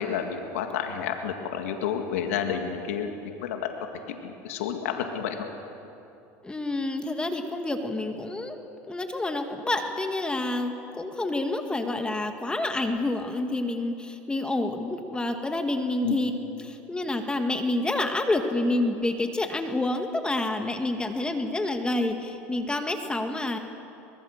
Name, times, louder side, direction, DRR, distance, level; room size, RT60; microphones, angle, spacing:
voice 1, 0.0-3.1 3.4-3.7 4.1-5.5 16.0-16.2, left 8 dB, 85° left, 4 dB, 2.0 m, -30 dB
voice 2, 6.4-16.3 16.6-23.6, left 2 dB, 15° left, 5 dB, 1.9 m, -28 dB
24.0 x 21.0 x 6.7 m, 2.8 s
supercardioid pair, 100°, 7 cm